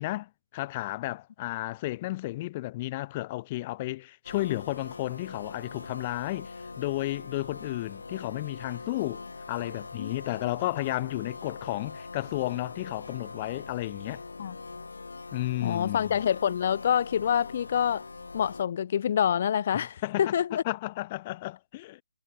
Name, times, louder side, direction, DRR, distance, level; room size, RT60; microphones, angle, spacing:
voice 1, 0.0-9.2 9.5-14.2 15.3-16.2 19.7-20.3 20.6-22.0, left 18 dB, 20° left, 1.7 m, -33 dB
sound 1, 4.2-18.6, left 4 dB, 85° left, 5.2 m, -42 dB
voice 2, 15.6-18.0 18.3-20.6, left 9 dB, 40° left, 1.1 m, -26 dB
hypercardioid pair, 170°, 0 cm